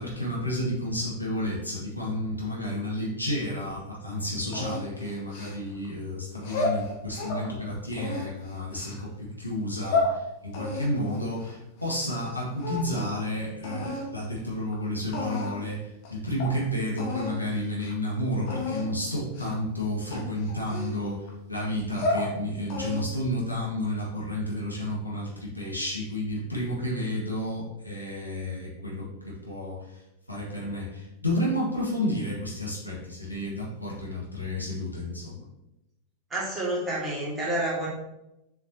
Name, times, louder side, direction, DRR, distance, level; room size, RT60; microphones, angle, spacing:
voice 1, 0.0-30.0 30.3-35.5, left 1 dB, 90° left, -5 dB, 1.8 m, -31 dB
sound 1, 4.5-5.9 6.4-7.5 7.9-9.0 9.6-10.1 10.5-12.3 12.6-13.2 13.6-14.1 14.7-14.8 15.1-15.7 16.0-16.1 16.4-16.5 17.0-17.4 17.7-17.9 18.5-18.9 19.3-19.7 20.1-21.3 21.8-22.3 22.7-23.2, left 2 dB, 45° left, 1.4 m, -31 dB
voice 2, 36.3-37.9, right 1 dB, 15° right, -5 dB, 2.4 m, -29 dB
6.8 x 5.1 x 2.9 m, 0.90 s
figure-of-eight pair, 90°, 0 cm